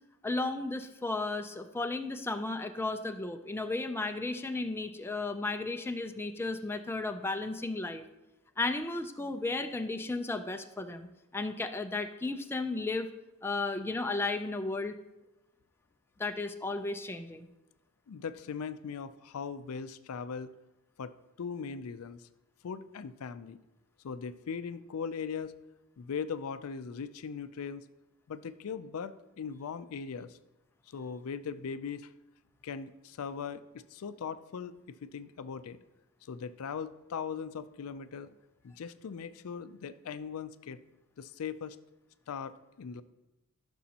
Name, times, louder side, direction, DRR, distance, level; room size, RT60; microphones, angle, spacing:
voice 1, 0.2-8.0 8.6-11.1 11.3-13.1 13.4-14.9 16.2-17.5, left 3 dB, 10° left, 6 dB, 0.4 m, -34 dB
voice 2, 18.1-20.5 21.0-22.3 22.6-23.6 24.0-25.6 26.0-27.8 28.3-30.4 30.9-32.1 32.6-35.8 36.2-38.3 38.6-40.8 41.2-41.8 42.3-43.0, left 6 dB, 80° left, 13 dB, 0.4 m, -39 dB
14.0 x 6.2 x 2.9 m, 0.98 s
head